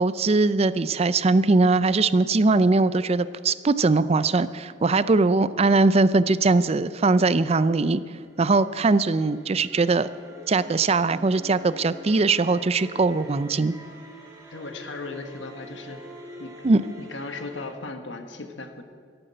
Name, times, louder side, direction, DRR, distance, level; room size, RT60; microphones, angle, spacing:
voice 1, 0.0-8.0 8.4-10.1 10.5-13.7 16.6-16.8, right 3 dB, 35° right, 15 dB, 0.4 m, -21 dB
sound 1, 8.1-17.7, equal, 20° right, 2.4 m, -45 dB
voice 2, 14.5-16.0 16.4-16.5 17.0-18.8, left 3 dB, 80° left, 6 dB, 1.5 m, -37 dB
14.0 x 11.5 x 7.8 m, 2.2 s
head